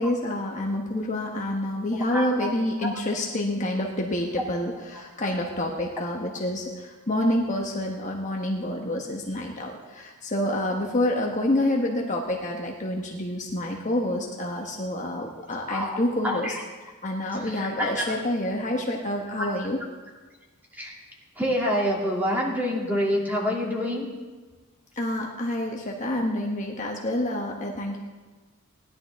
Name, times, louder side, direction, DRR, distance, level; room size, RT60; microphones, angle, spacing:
voice 1, 0.0-16.5 17.0-19.8 25.0-28.0, left 1 dB, 35° left, 0 dB, 1.2 m, -28 dB
voice 2, 2.1-2.5 2.8-2.9 15.7-16.6 17.4-18.2 19.4-19.5 20.8-20.9 21.4-24.1, equal, 10° right, -4 dB, 2.6 m, -27 dB
18.0 x 11.0 x 3.6 m, 1.3 s
head